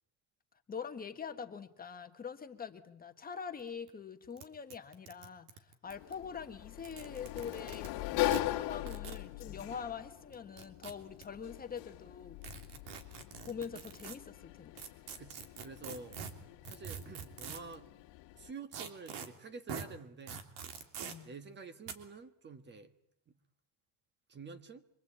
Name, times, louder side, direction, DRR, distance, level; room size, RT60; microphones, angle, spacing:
voice 1, 0.7-12.4 12.9-13.0 13.4-14.9 21.0-21.3, left 6 dB, 20° left, 1.4 m, -44 dB
sound 1, 3.6-3.7 3.9-4.0 4.4-4.5 4.7-6.1 6.7-7.9 8.3-8.4 8.9-9.2 10.3-11.2 12.4-14.2 14.8-17.7 18.7-19.3 19.7-19.9 20.3-21.1 21.9-22.0, right 7 dB, 75° right, 3.3 m, -44 dB
Sliding door, 5.9-18.5, left 17 dB, 80° left, 2.3 m, -41 dB
voice 2, 15.2-16.2 16.7-17.9 18.3-20.4 21.2-22.9 24.3-24.8, right 4 dB, 25° right, 1.5 m, -49 dB
27.0 x 24.0 x 8.7 m
cardioid pair, 155°, 42 cm